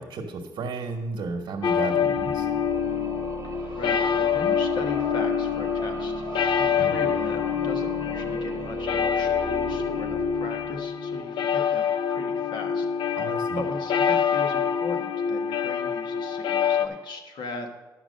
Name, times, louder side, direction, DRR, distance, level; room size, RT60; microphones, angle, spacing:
voice 1, 0.0-2.5 6.8-6.9 13.2-13.6, right 3 dB, 80° right, 2 dB, 1.0 m, -33 dB
sound 1, 1.6-16.9, left 7 dB, 85° left, 0.6 m, -26 dB
sound 2, 2.0-11.1, right 4 dB, 40° right, 0.7 m, -38 dB
voice 2, 3.4-6.2 6.5-13.3 13.5-17.7, left 3 dB, 70° left, 4 dB, 1.3 m, -38 dB
10.5 x 6.0 x 6.4 m, 1.2 s
wide cardioid pair, 170°, 8 cm